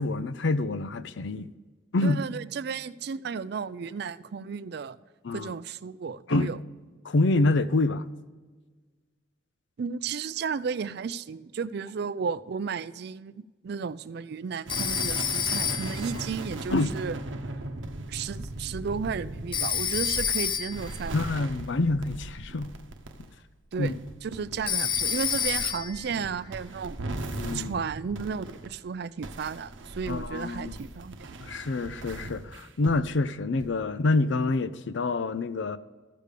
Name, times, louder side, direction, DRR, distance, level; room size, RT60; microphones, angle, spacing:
voice 1, 0.0-1.5 1.9-2.2 5.2-5.5 6.3-6.5 7.0-8.1 16.7-16.9 21.1-22.8 23.8-23.9 27.3-27.8 30.1-30.7 31.4-35.8, left 2 dB, 70° left, 0.5 m, -27 dB
voice 2, 2.0-5.0 5.3-6.6 9.8-17.2 18.1-21.2 23.7-23.9 24.2-27.0 27.5-31.3, right 6 dB, 60° right, 0.4 m, -33 dB
Telephone, 14.7-16.1 19.5-20.9 24.7-26.1, left 8 dB, 25° left, 0.5 m, -28 dB
sound 1, 14.7-28.8 29.2-33.1 33.6-33.8, right 2 dB, 85° right, 0.9 m, -38 dB
14.0 x 5.2 x 6.5 m
head